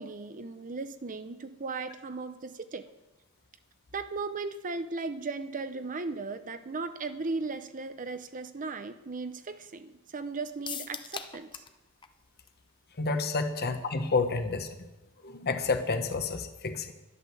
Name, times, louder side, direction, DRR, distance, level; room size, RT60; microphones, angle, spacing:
voice 1, 0.0-2.9 3.9-11.6, right 3 dB, 35° right, 11 dB, 0.6 m, -37 dB
sound 1, 10.7-11.8 12.0-12.1 12.5-12.6, left 6 dB, 20° left, 0.7 m, -39 dB
voice 2, 13.0-14.7 15.2-16.9, left 3 dB, 45° left, 7 dB, 1.2 m, -29 dB
11.0 x 11.0 x 6.9 m, 1.1 s
head